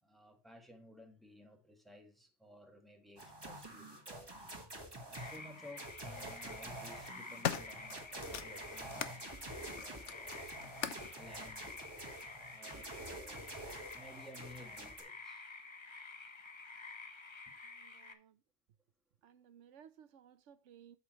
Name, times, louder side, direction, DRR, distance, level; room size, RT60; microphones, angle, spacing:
voice 1, 0.0-4.5 5.1-11.8 12.5-13.5 13.9-15.4 17.5-17.6, left 1 dB, ahead, 1.5 m, -57 dB
sound 1, 3.2-15.0, right 1 dB, 20° right, 1.6 m, -48 dB
sound 2, 4.8-4.9 6.0-6.4 6.9-9.2 9.6-11.1 12.0-12.1, left 9 dB, 80° left, 1.1 m, -41 dB
sound 3, 5.1-18.1, left 3 dB, 25° left, 0.8 m, -51 dB
voice 2, 17.8-18.3 19.2-21.0, right 8 dB, 85° right, 1.0 m, -59 dB
8.3 x 7.0 x 3.0 m
omnidirectional pair, 1.2 m